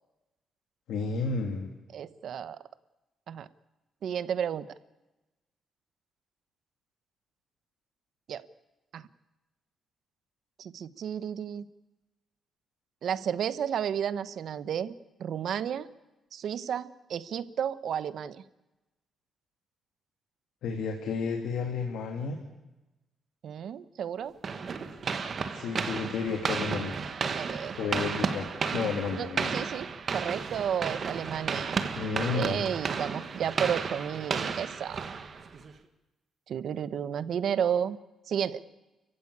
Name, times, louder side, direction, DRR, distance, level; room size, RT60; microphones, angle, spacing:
voice 1, 0.9-1.7 20.6-22.4 25.5-27.0 27.8-28.5 28.7-29.5 31.9-32.7, left 5 dB, 85° left, 3 dB, 2.8 m, -32 dB
voice 2, 1.9-2.6 3.3-3.5 4.0-4.7 8.3-8.5 8.9-9.1 10.6-11.7 13.0-14.9 15.2-15.9 16.3-18.4 23.4-24.3 27.3-28.0 29.2-29.9 30.1-31.8 32.3-35.0 36.5-38.0 38.3-38.6, right 8 dB, 60° right, 15 dB, 1.0 m, -32 dB
sound 1, 24.4-35.7, right 5 dB, 40° right, 1.6 m, -33 dB
30.0 x 15.5 x 8.7 m, 1.1 s
cardioid pair, 160°, 0 cm